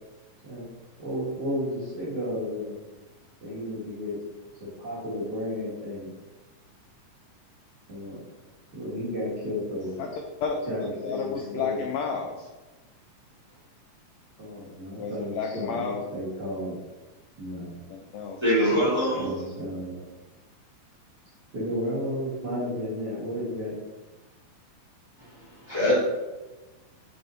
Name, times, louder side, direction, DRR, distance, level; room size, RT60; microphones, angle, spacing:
voice 1, 1.0-2.8 3.4-4.2 4.6-6.1 7.9-8.2 8.7-10.0 10.7-11.8 14.4-16.8 17.4-17.8 19.1-20.0 21.5-23.7, equal, 40° right, -8 dB, 1.8 m, -33 dB
voice 2, 10.0-10.7 11.0-12.5 15.0-16.0 17.9-18.4, left 5 dB, 85° left, 3 dB, 1.5 m, -32 dB
voice 3, 18.4-19.4 25.7-26.0, equal, 10° right, -8 dB, 1.5 m, -23 dB
5.9 x 5.4 x 4.0 m, 1.2 s
omnidirectional pair, 3.7 m